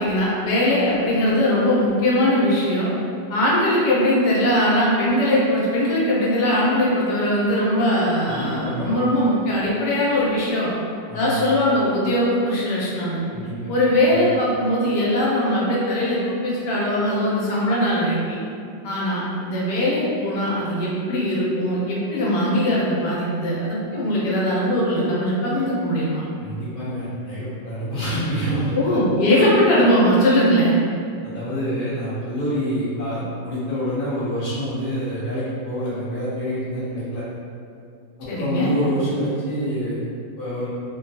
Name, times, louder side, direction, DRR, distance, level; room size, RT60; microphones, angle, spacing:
voice 1, 0.0-2.9 3.3-10.7 11.1-13.2 13.7-18.4 18.8-26.2 28.7-30.7 38.3-38.7, left 1 dB, 85° left, -6 dB, 1.3 m, -20 dB
voice 2, 8.3-8.9 11.1-11.5 13.3-13.7 14.1-14.2 26.4-29.0 31.2-37.2 38.2-40.0 40.4-40.7, equal, 60° left, -11 dB, 0.5 m, -27 dB
3.0 x 2.2 x 2.6 m, 2.4 s
omnidirectional pair, 1.8 m